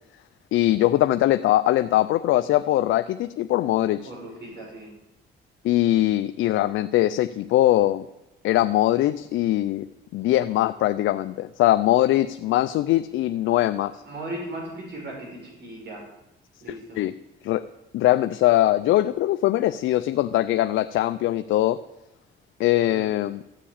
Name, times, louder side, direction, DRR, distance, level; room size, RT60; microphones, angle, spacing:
voice 1, 0.5-4.1 5.6-8.0 8.4-9.9 10.1-14.0 16.7-17.1 17.4-17.6 17.9-21.8 22.6-23.4, left 14 dB, 80° left, 11 dB, 0.5 m, -21 dB
voice 2, 3.9-4.9 14.0-16.0 16.6-17.0 22.8-23.0, right 1 dB, 55° right, -2 dB, 5.7 m, -37 dB
14.0 x 7.4 x 8.7 m, 0.90 s
cardioid pair, 90°, 20 cm